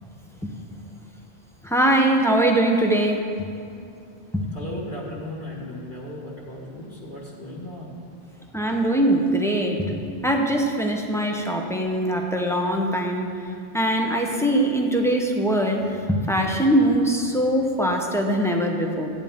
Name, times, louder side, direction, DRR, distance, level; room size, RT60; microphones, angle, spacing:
voice 1, 1.6-3.5 4.3-4.4 8.5-13.3 13.7-19.1, right 1 dB, 5° left, 1 dB, 0.8 m, -22 dB
voice 2, 4.5-8.0, left 1 dB, 55° left, -6 dB, 1.8 m, -36 dB
14.0 x 9.0 x 3.6 m, 2.6 s
omnidirectional pair, 1.1 m